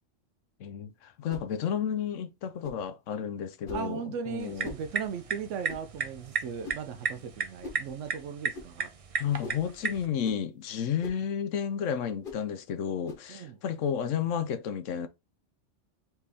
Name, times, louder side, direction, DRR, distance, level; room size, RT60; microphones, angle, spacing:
voice 1, 0.6-4.7 9.2-15.1, left 8 dB, 80° left, 1.0 m, -32 dB
sound 1, 1.3-1.5 2.6-2.8 3.6-3.9 4.6-4.9 5.7-5.9 6.6-6.9 7.6-7.8 8.5-8.7 9.4-9.7 10.2-10.4 11.0-11.2 12.2-12.4 13.0-13.3, left 2 dB, 50° left, 1.2 m, -43 dB
voice 2, 3.7-8.9 13.3-13.6, right 7 dB, 80° right, 0.9 m, -37 dB
sound 2, 4.4-10.1, right 5 dB, 40° right, 0.5 m, -35 dB
4.4 x 3.0 x 3.4 m
omnidirectional pair, 1.3 m